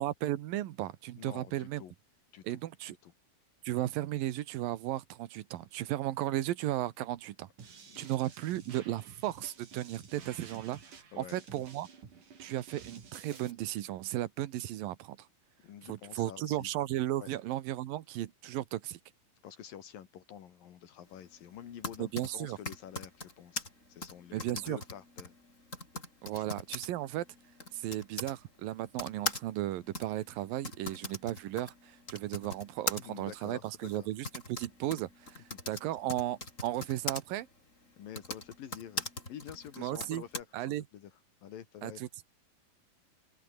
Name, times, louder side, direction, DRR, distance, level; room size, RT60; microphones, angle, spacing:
voice 1, 0.0-1.8 2.4-3.0 3.6-7.5 8.0-10.8 11.2-11.9 12.4-15.2 15.9-19.0 22.0-22.6 24.3-24.8 26.2-27.3 27.7-37.5 39.8-40.2 40.5-40.8 41.8-42.1, right 14 dB, 90° right, 2.9 m, -35 dB
voice 2, 1.2-1.9 2.3-2.6 2.9-3.1 7.9-8.2 11.1-11.4 15.6-16.7 17.2-17.3 19.4-25.4 26.3-26.5 33.0-34.1 35.5-35.6 38.0-41.1 41.4-42.0, left 10 dB, 80° left, 3.7 m, -48 dB
sound 1, 7.6-13.5, right 6 dB, 65° right, 5.6 m, -52 dB
Typing, 21.5-28.4 29.0-37.2 38.0-40.4, left 2 dB, 20° left, 4.9 m, -41 dB
omnidirectional pair, 4.0 m